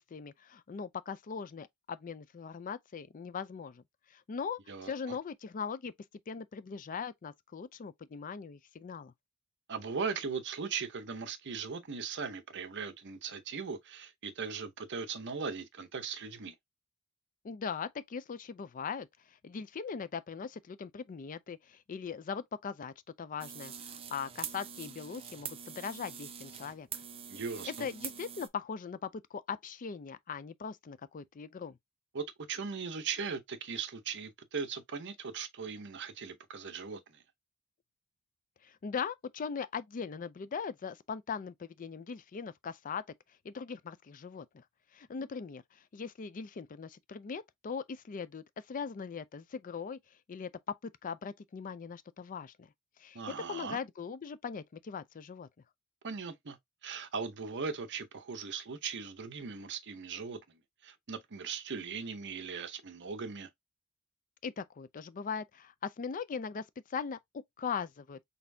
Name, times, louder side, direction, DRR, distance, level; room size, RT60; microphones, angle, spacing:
voice 1, 0.0-3.8 4.1-5.9 6.3-9.1 17.4-26.9 27.6-31.8 38.6-43.0 43.4-44.6 44.9-50.0 50.3-50.5 50.8-52.7 53.0-53.2 53.5-55.5 64.4-66.6 66.9-68.2, left 6 dB, 40° left, 0.4 m, -40 dB
voice 2, 4.7-5.2 9.7-16.5 27.3-27.9 32.1-37.2 53.1-53.8 56.0-63.5, right 5 dB, 55° right, 0.7 m, -39 dB
sound 1, 23.4-28.5, right 8 dB, 25° right, 0.5 m, -44 dB
4.2 x 3.4 x 2.6 m
head